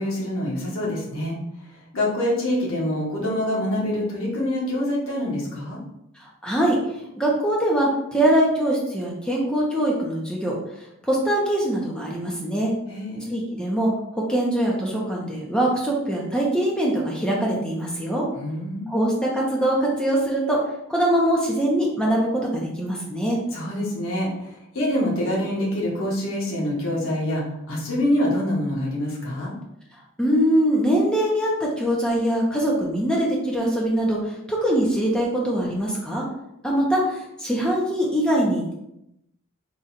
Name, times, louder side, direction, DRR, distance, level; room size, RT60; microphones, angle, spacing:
voice 1, 0.0-1.3 1.9-5.8 12.9-13.3 18.3-18.9 23.5-24.3 24.7-29.5, left 1 dB, 75° left, -4 dB, 1.2 m, -25 dB
voice 2, 6.4-6.8 7.2-10.6 11.0-12.7 13.3-13.9 14.2-18.3 18.9-20.6 20.9-23.4 30.2-36.2 36.6-38.7, right 1 dB, 5° left, -3 dB, 0.6 m, -22 dB
3.8 x 2.3 x 4.1 m, 0.82 s
head